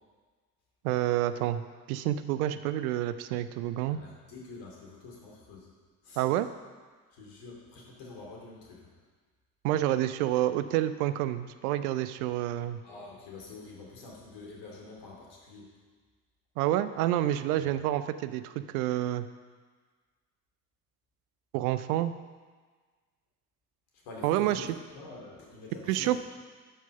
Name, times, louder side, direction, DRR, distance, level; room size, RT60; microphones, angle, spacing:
voice 1, 0.8-4.0 6.2-6.5 9.6-12.8 16.6-19.3 21.5-22.1 24.2-24.7 25.9-26.2, right 13 dB, 65° right, 12 dB, 0.7 m, -28 dB
voice 2, 3.9-5.7 6.0-6.3 7.1-8.9 12.8-15.7 17.6-17.7 23.9-26.2, left 3 dB, 60° left, -2 dB, 3.1 m, -47 dB
11.0 x 6.0 x 5.6 m, 1.5 s
figure-of-eight pair, 55°, 47 cm